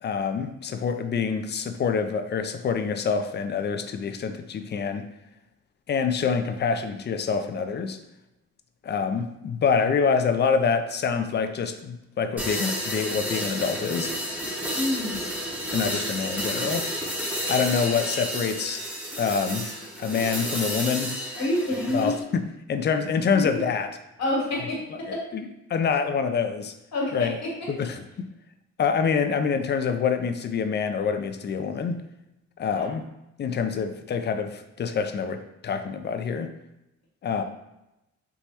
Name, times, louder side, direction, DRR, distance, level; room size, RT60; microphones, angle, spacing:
voice 1, 0.0-5.1 5.9-8.0 8.8-14.1 15.7-16.9 17.5-18.8 19.2-19.7 20.0-21.1 21.9-23.9 25.1-26.7 27.1-27.4 27.7-28.3 28.8-32.0 32.6-33.1 33.4-36.5 37.2-37.4, left 6 dB, 35° left, 8 dB, 0.4 m, -26 dB
sound 1, 12.4-22.2, equal, 5° right, 0.8 m, -31 dB
voice 2, 14.7-15.3 21.4-22.1 23.3-23.5 24.2-25.3 26.9-27.7 32.7-32.9 37.3-37.4, left 1 dB, 60° left, -3 dB, 1.4 m, -28 dB
3.5 x 3.0 x 2.8 m, 0.90 s
cardioid pair, 70°, 30 cm